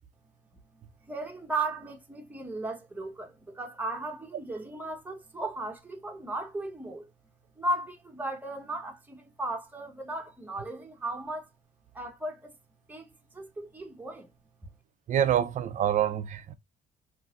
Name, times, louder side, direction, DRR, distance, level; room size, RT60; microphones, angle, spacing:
voice 1, 0.7-7.1 7.6-11.5 11.9-12.5 12.9-14.3, right 2 dB, 10° right, 1.0 m, -36 dB
voice 2, 15.1-16.5, right 10 dB, 50° right, 0.5 m, -26 dB
3.9 x 2.7 x 2.4 m
cardioid pair, 110°, 17 cm